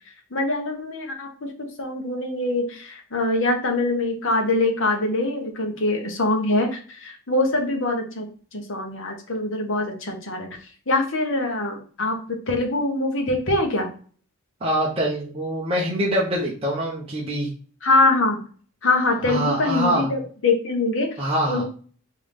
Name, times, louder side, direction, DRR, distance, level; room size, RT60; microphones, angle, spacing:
voice 1, 0.3-1.3 1.6-10.5 10.9-13.9 17.8-18.4 18.8-21.2 21.5-21.6, left 2 dB, 60° left, 2 dB, 1.1 m, -23 dB
voice 2, 14.6-17.5 19.2-20.1 21.2-21.6, right 1 dB, 25° right, -5 dB, 0.9 m, -24 dB
3.8 x 3.8 x 3.5 m, 0.41 s
head